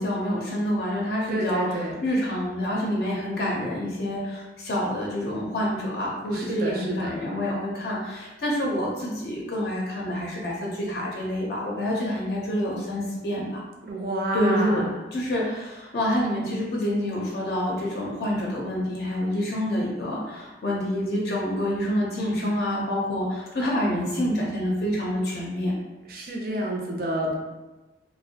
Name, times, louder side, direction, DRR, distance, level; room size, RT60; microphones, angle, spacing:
voice 1, 0.0-13.6 14.3-14.8 15.1-25.7, equal, 65° left, -3 dB, 0.5 m, -27 dB
voice 2, 1.3-1.9 6.3-7.2 13.8-14.9 26.1-27.4, right 1 dB, 55° right, 0 dB, 0.4 m, -29 dB
2.4 x 2.0 x 2.7 m, 1.1 s
head